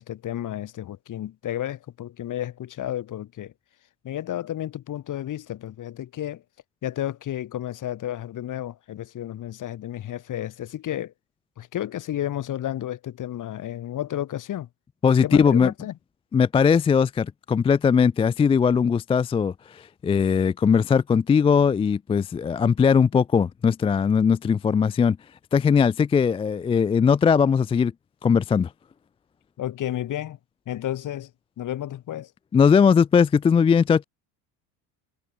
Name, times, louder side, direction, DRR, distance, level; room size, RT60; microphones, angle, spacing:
voice 1, 0.0-3.5 4.0-6.4 6.8-11.1 11.6-14.7 15.2-15.9 29.6-30.4 30.7-31.3 31.6-32.3, left 12 dB, 55° left, 3.8 m, -32 dB
voice 2, 15.0-15.7 16.3-25.2 25.5-27.9 28.2-28.7 32.5-34.0, left 6 dB, 15° left, 0.3 m, -20 dB
supercardioid pair, 80°, 38 cm